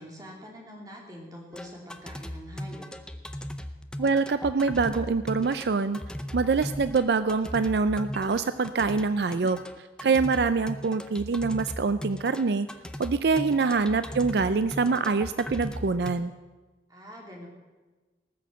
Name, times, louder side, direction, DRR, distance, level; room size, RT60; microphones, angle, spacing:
voice 1, 0.0-2.9 16.9-17.5, equal, 20° right, -1 dB, 2.9 m, -45 dB
sound 1, 1.5-16.1, equal, 5° left, 0.6 m, -38 dB
voice 2, 4.0-6.0 6.3-9.6 10.0-12.7 13.0-16.3, right 4 dB, 70° right, 12 dB, 0.4 m, -25 dB
19.0 x 6.5 x 7.6 m, 1.2 s
head